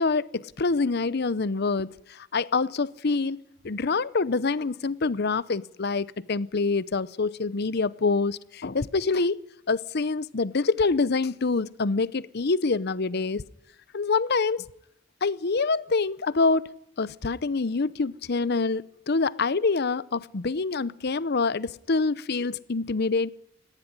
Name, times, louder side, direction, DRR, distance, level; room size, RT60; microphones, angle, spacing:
voice 1, 0.0-3.4 3.6-9.4 9.7-13.4 13.9-14.7 15.2-16.7 17.0-23.3, left 4 dB, 50° left, 0.7 m, -26 dB
18.0 x 15.0 x 9.8 m
head